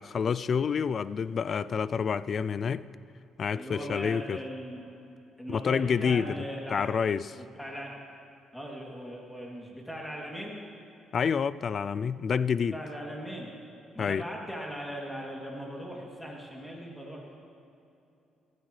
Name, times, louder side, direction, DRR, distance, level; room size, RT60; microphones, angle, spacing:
voice 1, 0.0-2.9 3.4-4.4 5.5-6.4 6.7-7.4 11.1-12.8 14.0-14.3, left 6 dB, 50° left, 17 dB, 0.3 m, -28 dB
voice 2, 3.5-4.8 5.4-6.9 7.4-7.9 8.5-10.6 12.7-13.5 13.9-17.4, equal, 5° left, -2 dB, 2.8 m, -39 dB
15.5 x 15.0 x 3.3 m, 2.8 s
cardioid pair, 85°, 0 cm